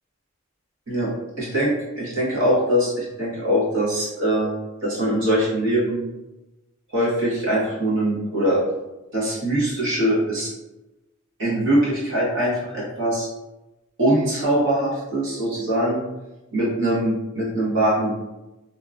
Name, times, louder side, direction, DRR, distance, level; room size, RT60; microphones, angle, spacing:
voice 1, 1.4-4.5 4.8-6.0 6.9-8.6 9.1-10.5 11.4-13.3 14.0-16.0 16.5-18.1, right 1 dB, 60° right, -7 dB, 1.2 m, -22 dB
2.8 x 2.4 x 2.4 m, 1.0 s
head